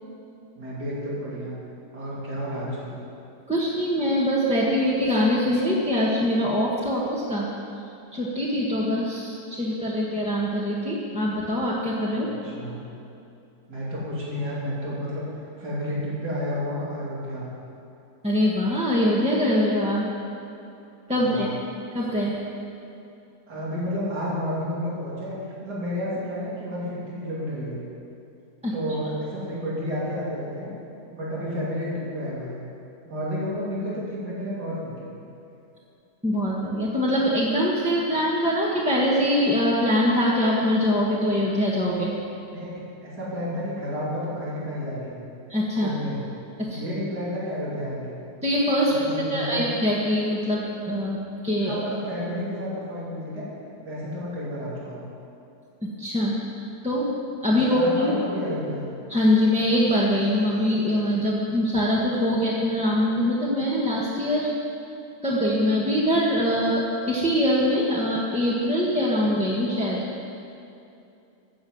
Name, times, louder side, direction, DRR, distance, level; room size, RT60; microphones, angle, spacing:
voice 1, 0.6-1.5 1.9-3.0 12.2-12.8 13.7-15.3 15.6-17.5 21.1-21.5 23.5-27.8 28.7-30.7 31.1-32.6 33.1-35.1 42.5-45.2 45.8-46.2 46.7-48.2 48.8-49.6 51.6-53.5 53.8-55.0 57.6-58.8, equal, 70° right, -7 dB, 3.5 m, -31 dB
voice 2, 3.5-7.5 8.1-12.5 18.2-20.1 21.1-21.5 21.9-22.4 28.6-28.7 36.2-42.1 45.5-45.9 46.6-46.8 48.4-51.8 56.0-56.3 56.8-57.1 57.4-58.1 59.1-64.5 65.2-70.0, equal, 5° right, -6 dB, 1.3 m, -23 dB
14.0 x 7.5 x 8.1 m, 2.7 s
omnidirectional pair, 1.8 m